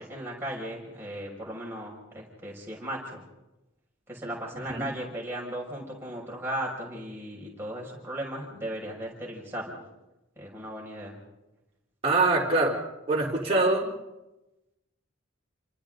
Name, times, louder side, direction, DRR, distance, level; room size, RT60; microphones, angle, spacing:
voice 1, 0.0-3.2 4.1-9.8 10.4-11.1, right 1 dB, 10° right, -3 dB, 6.4 m, -36 dB
voice 2, 12.0-12.8 13.1-13.9, right 2 dB, 25° right, -3 dB, 4.1 m, -23 dB
29.5 x 25.0 x 4.0 m, 0.97 s
head